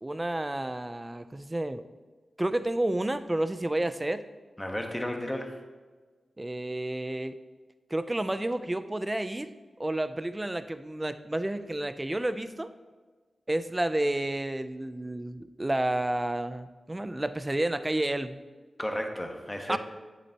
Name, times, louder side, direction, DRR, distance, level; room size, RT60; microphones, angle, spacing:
voice 1, 0.0-1.9 2.4-4.2 6.4-7.3 7.9-9.5 9.8-12.7 13.5-18.4 19.7-19.8, right 1 dB, 20° right, 12 dB, 0.5 m, -30 dB
voice 2, 4.6-5.6 18.8-19.8, left 1 dB, 15° left, 3 dB, 1.2 m, -33 dB
8.2 x 7.7 x 2.9 m, 1.4 s
cardioid pair, 45°, 0 cm